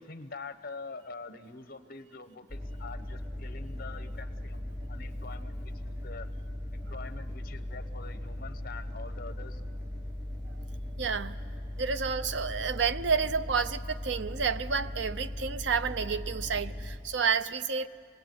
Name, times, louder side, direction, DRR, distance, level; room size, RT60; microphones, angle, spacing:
voice 1, 0.0-6.3 6.7-9.6, left 4 dB, 55° left, 9 dB, 1.1 m, -45 dB
sound 1, 2.5-17.0, left 1 dB, 25° right, 4.4 m, -38 dB
voice 2, 11.0-11.4 11.8-17.9, right 5 dB, 70° right, 14 dB, 0.7 m, -30 dB
26.0 x 20.0 x 9.3 m, 2.3 s
head